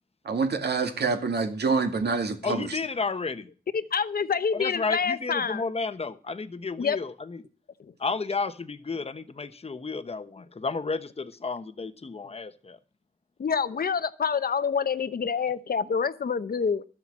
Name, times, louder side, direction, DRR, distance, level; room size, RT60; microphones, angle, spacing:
voice 1, 0.2-2.8, right 4 dB, 75° right, 2.1 m, -26 dB
voice 2, 2.4-3.5 4.5-7.4 8.0-12.8, left 4 dB, 35° left, 1.0 m, -32 dB
voice 3, 3.7-5.6 6.8-7.0 13.4-16.8, left 6 dB, 60° left, 0.9 m, -27 dB
13.0 x 7.6 x 7.3 m
wide cardioid pair, 90°, 17 cm